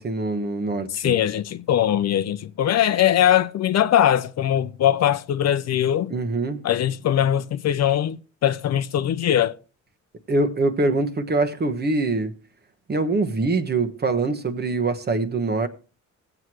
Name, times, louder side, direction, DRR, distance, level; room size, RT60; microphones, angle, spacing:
voice 1, 0.0-1.2 6.1-6.6 10.3-12.3 12.9-15.7, right 3 dB, 35° right, 1.2 m, -24 dB
voice 2, 0.9-6.1 6.6-8.2 8.4-9.6, left 11 dB, 60° left, 0.6 m, -21 dB
18.0 x 7.9 x 3.0 m
cardioid pair, 90°, 30 cm